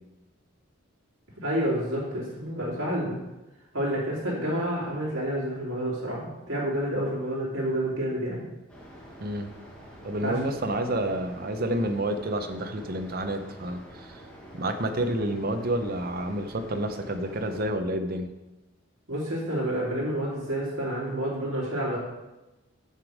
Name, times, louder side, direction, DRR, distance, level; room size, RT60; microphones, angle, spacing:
voice 1, 1.4-3.2 3.7-8.4 10.2-10.4 19.1-22.0, right 1 dB, 65° right, -5 dB, 3.0 m, -29 dB
sound 1, 8.7-17.7, equal, 5° left, 1.6 m, -47 dB
voice 2, 9.2-9.5 10.0-14.2 14.5-18.3, right 1 dB, 45° right, 7 dB, 0.7 m, -29 dB
7.0 x 6.5 x 4.9 m, 1.0 s
head